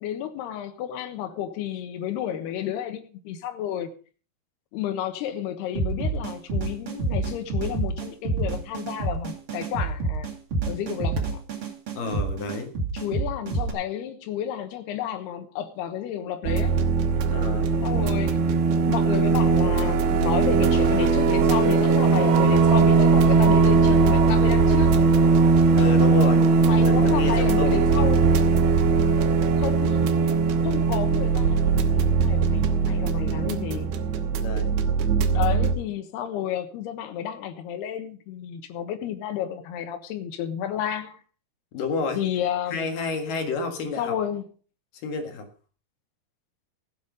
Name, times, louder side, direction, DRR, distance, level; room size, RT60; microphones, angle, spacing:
voice 1, 0.0-3.9 4.7-10.3 10.6-11.4 12.9-16.8 17.8-24.9 26.6-28.3 29.6-30.1 30.6-33.9 35.3-41.2 42.2-42.9 44.0-44.4, left 10 dB, 85° left, 3.2 m, -31 dB
sound 1, 5.8-13.7, right 3 dB, 40° right, 2.6 m, -28 dB
voice 2, 11.9-12.7 17.2-17.7 25.7-27.8 34.4-34.8 41.7-42.2 42.7-44.2 45.0-45.5, left 4 dB, 60° left, 3.3 m, -30 dB
sound 2, 16.4-35.7, right 4 dB, 80° right, 3.1 m, -20 dB
15.5 x 8.2 x 5.2 m
omnidirectional pair, 4.6 m